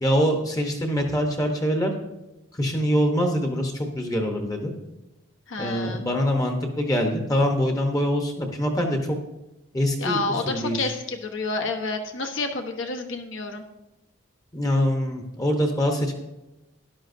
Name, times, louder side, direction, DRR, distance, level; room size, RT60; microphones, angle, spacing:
voice 1, 0.0-1.9 2.6-4.7 5.6-9.0 9.7-10.9 14.5-16.1, equal, 15° left, 3 dB, 0.9 m, -24 dB
voice 2, 5.5-6.0 10.0-13.6, left 3 dB, 65° left, 5 dB, 1.1 m, -29 dB
13.0 x 11.0 x 2.7 m, 0.96 s
head